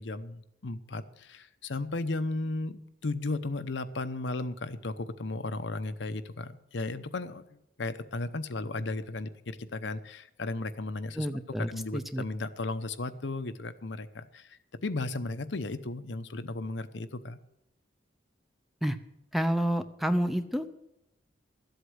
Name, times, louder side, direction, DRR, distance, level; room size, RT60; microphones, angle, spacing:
voice 1, 0.0-11.3 11.7-17.4, left 2 dB, 70° left, 10 dB, 0.8 m, -35 dB
voice 2, 11.2-12.2 18.8-19.0 19.3-20.7, equal, ahead, 9 dB, 0.6 m, -29 dB
13.5 x 8.1 x 7.9 m, 0.87 s
head